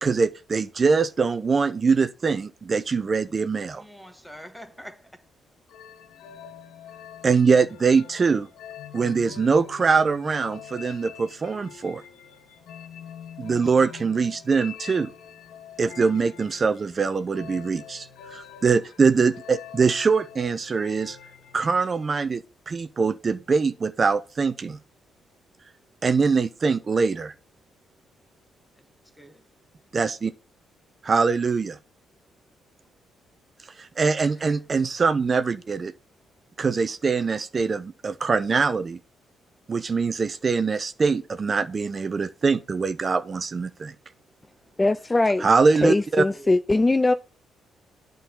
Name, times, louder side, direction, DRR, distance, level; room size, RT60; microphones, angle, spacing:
voice 1, 0.0-3.8 7.2-8.5 8.9-12.0 13.4-15.1 15.8-21.2 21.5-24.8 26.0-27.3 29.9-30.3 31.0-31.8 33.8-35.9 36.6-39.0 39.7-43.9 45.4-46.2, right 5 dB, 35° right, 0.7 m, -23 dB
voice 2, 3.7-5.2 28.8-28.9 29.2-29.4 34.4-34.6 46.3-46.6, equal, ahead, 1.4 m, -45 dB
sound 1, 5.7-22.1, left 8 dB, 90° left, 1.2 m, -45 dB
voice 3, 44.8-45.5 45.8-47.1, left 2 dB, 20° left, 0.4 m, -21 dB
9.0 x 3.9 x 7.1 m
cardioid pair, 90°, 0 cm